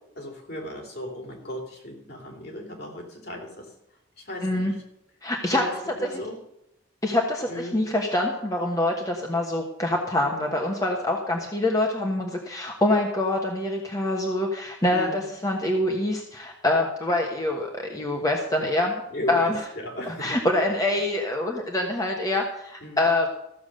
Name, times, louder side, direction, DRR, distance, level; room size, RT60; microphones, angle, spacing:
voice 1, 0.1-3.7 4.2-4.8 5.5-5.7 6.0-6.4 7.5-7.8 10.2-10.4 14.9-15.2 19.1-20.3 22.8-23.0, left 1 dB, 55° left, 0 dB, 3.4 m, -36 dB
voice 2, 4.4-4.7 5.2-5.6 6.0-6.2 7.0-19.0 19.3-19.6 20.1-23.3, left 1 dB, 20° left, 0 dB, 1.3 m, -25 dB
14.5 x 7.1 x 6.5 m, 0.83 s
head